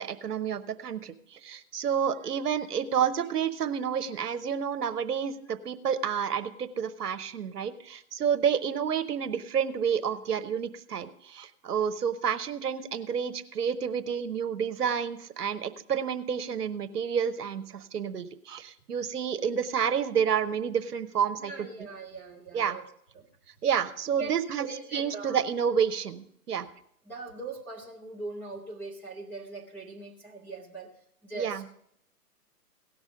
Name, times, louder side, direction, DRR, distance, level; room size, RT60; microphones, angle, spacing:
voice 1, 0.0-21.5 22.5-22.8 23.6-24.7 24.9-26.7 31.3-31.6, right 7 dB, 70° right, 11 dB, 1.0 m, -29 dB
voice 2, 21.4-22.8 23.1-23.3 24.2-25.4 27.0-30.9 31.2-31.7, right 3 dB, 5° left, -5 dB, 0.7 m, -41 dB
17.0 x 6.3 x 5.0 m, 0.70 s
hypercardioid pair, 145°, 48 cm